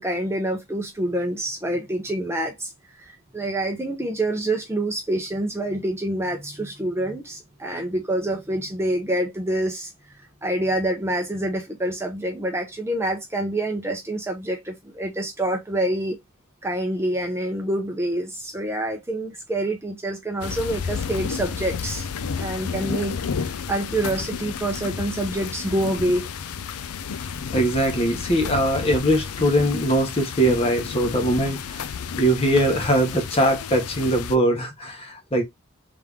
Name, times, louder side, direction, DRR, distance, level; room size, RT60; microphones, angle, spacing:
voice 1, 0.0-2.7 3.0-9.9 10.4-16.2 16.6-22.1 22.4-26.3, right 1 dB, 10° right, 0.7 m, -27 dB
sound 1, 20.4-34.4, left 6 dB, 90° left, 0.5 m, -31 dB
voice 2, 27.2-31.8 32.2-35.4, right 1 dB, 25° left, 1.1 m, -21 dB
3.5 x 3.3 x 3.4 m
head